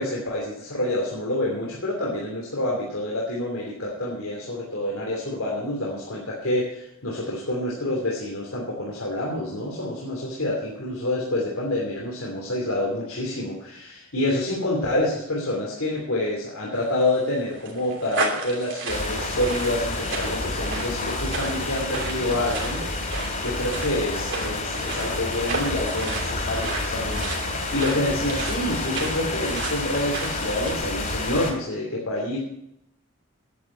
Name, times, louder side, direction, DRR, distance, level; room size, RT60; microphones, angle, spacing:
voice 1, 0.0-32.4, left 1 dB, 85° left, -3 dB, 3.0 m, -27 dB
sound 1, 16.9-30.7, right 4 dB, 60° right, 2.9 m, -34 dB
sound 2, 18.9-31.5, left 2 dB, 40° left, 3.0 m, -29 dB
10.5 x 8.8 x 8.4 m, 0.79 s
head